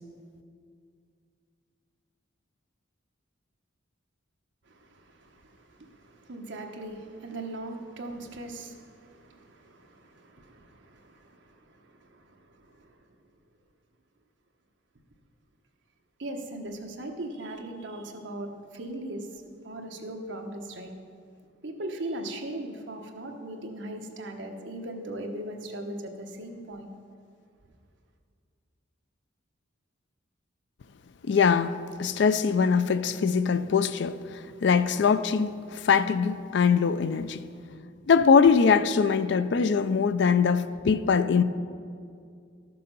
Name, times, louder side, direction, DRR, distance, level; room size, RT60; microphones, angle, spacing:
voice 1, 4.7-12.9 16.2-19.3 19.6-20.9 21.6-26.9, right 1 dB, 65° right, 1.1 m, -39 dB
voice 2, 31.2-37.4 38.1-41.4, left 6 dB, 60° left, 0.4 m, -22 dB
13.0 x 6.8 x 5.3 m
head